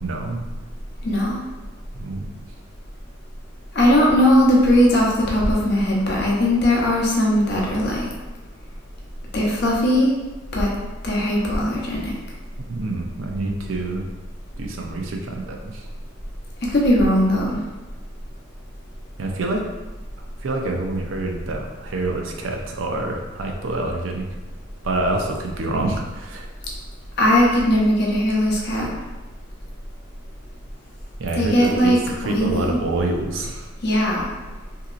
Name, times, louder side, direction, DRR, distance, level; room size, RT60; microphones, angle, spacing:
voice 1, 0.0-0.4 1.9-2.3 12.7-14.0 14.6-15.9 19.2-19.7 20.4-24.3 24.8-26.5 31.2-33.7, right 2 dB, 85° right, 2 dB, 0.5 m, -27 dB
voice 2, 1.0-1.4 3.7-8.1 9.3-10.1 10.5-10.7 11.0-12.1 16.7-17.6 27.2-28.9 31.3-32.0 32.2-32.8 33.8-34.2, left 1 dB, 55° left, -3 dB, 0.7 m, -18 dB
2.8 x 2.7 x 2.4 m, 1.2 s
head